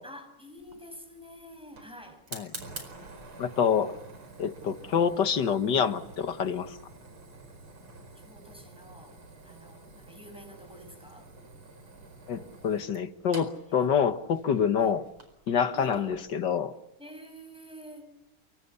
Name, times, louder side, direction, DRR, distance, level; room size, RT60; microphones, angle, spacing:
voice 1, 0.0-2.2 8.2-9.2 9.4-11.3 13.7-13.9 14.8-14.9 15.8-16.3 17.0-18.2, equal, ahead, 5.9 m, -47 dB
Fire, 0.6-16.2, right 2 dB, 80° right, 5.6 m, -48 dB
voice 2, 3.4-4.0 4.4-6.8 12.3-15.0 15.5-16.8, left 7 dB, 60° left, 1.8 m, -27 dB
28.5 x 24.0 x 6.9 m
omnidirectional pair, 2.3 m